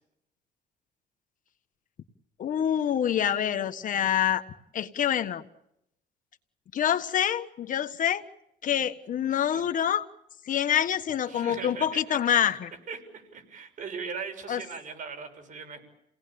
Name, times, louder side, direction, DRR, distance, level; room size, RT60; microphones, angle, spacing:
voice 1, 2.4-4.4 4.7-5.4 6.7-8.2 8.6-10.0 10.4-12.7 14.5-14.6, left 9 dB, 50° left, 9 dB, 1.4 m, -26 dB
voice 2, 9.3-9.6 11.3-12.2 12.9-15.8, right 5 dB, 50° right, 6 dB, 6.4 m, -39 dB
29.5 x 18.5 x 8.8 m, 0.79 s
cardioid pair, 110°, 17 cm